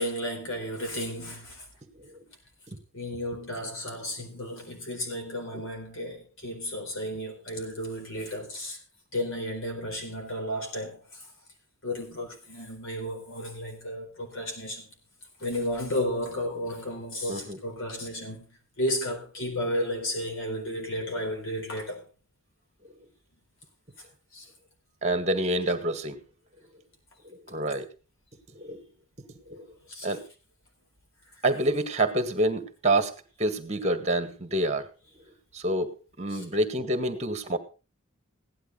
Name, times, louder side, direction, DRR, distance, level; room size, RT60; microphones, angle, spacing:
voice 1, 0.0-1.6 2.9-8.8 9.1-11.2 11.8-14.8 15.4-18.5 18.8-22.0 24.3-24.5 29.9-30.1 36.3-36.4, equal, 65° left, 4.2 m, -33 dB
voice 2, 25.0-26.2 27.2-27.9 28.5-28.8 29.4-29.7 30.0-30.2 31.4-34.9 35.5-37.6, right 1 dB, 30° right, 1.8 m, -28 dB
16.0 x 11.0 x 4.0 m
head